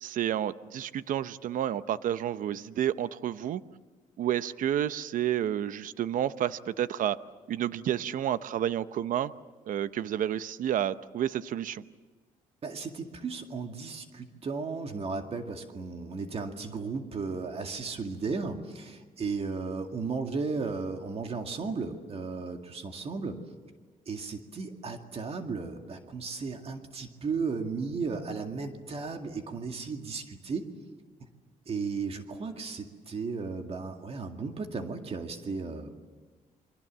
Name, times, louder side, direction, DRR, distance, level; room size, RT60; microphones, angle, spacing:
voice 1, 0.0-3.6 4.2-7.2 7.5-9.3 9.7-11.8, right 11 dB, 70° right, 14 dB, 0.8 m, -30 dB
voice 2, 12.6-23.4 24.1-30.7 31.7-35.9, right 4 dB, 45° right, 5 dB, 2.2 m, -35 dB
29.0 x 23.0 x 7.5 m, 1.4 s
cardioid pair, 105°, 14 cm